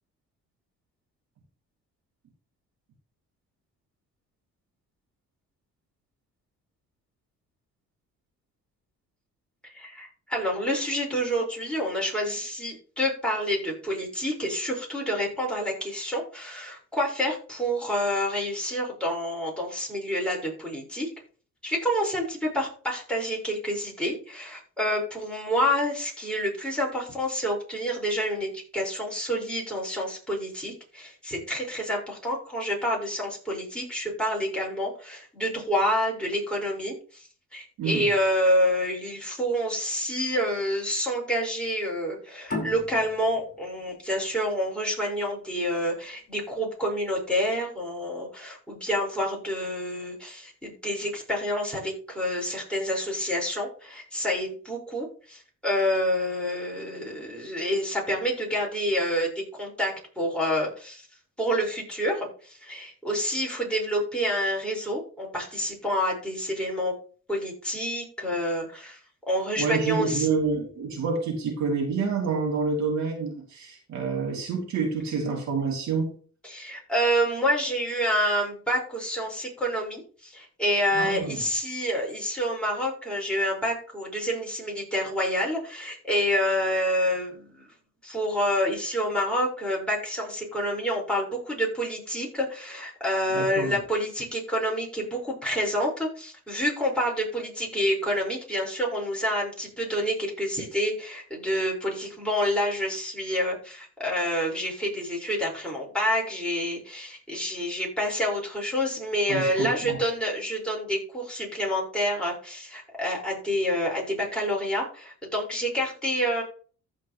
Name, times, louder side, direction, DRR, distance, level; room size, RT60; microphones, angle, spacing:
voice 1, 9.6-21.1 21.6-59.3 59.6-61.1 61.4-66.9 67.3-69.0 69.3-70.3 76.4-87.7 88.0-116.4, equal, 5° left, -3 dB, 5.2 m, -28 dB
sound 1, 42.5-45.7, left 2 dB, 30° left, 4.8 m, -37 dB
voice 2, 69.6-76.1 80.9-81.4 93.3-93.8 109.3-110.0, right 4 dB, 70° right, 0 dB, 3.0 m, -28 dB
15.0 x 5.1 x 3.2 m, 0.41 s
cardioid pair, 90°, 30 cm